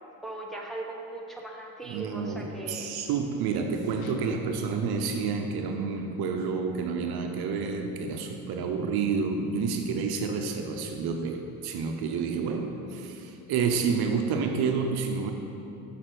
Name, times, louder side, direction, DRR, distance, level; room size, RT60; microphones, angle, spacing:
voice 1, 0.2-2.9, right 2 dB, ahead, -2 dB, 1.2 m, -39 dB
voice 2, 1.8-15.3, right 5 dB, 65° right, 4 dB, 0.8 m, -29 dB
sound 1, 4.0-5.4, equal, 60° left, 0.9 m, -38 dB
6.5 x 5.9 x 6.0 m, 2.7 s
supercardioid pair, 80°, 41 cm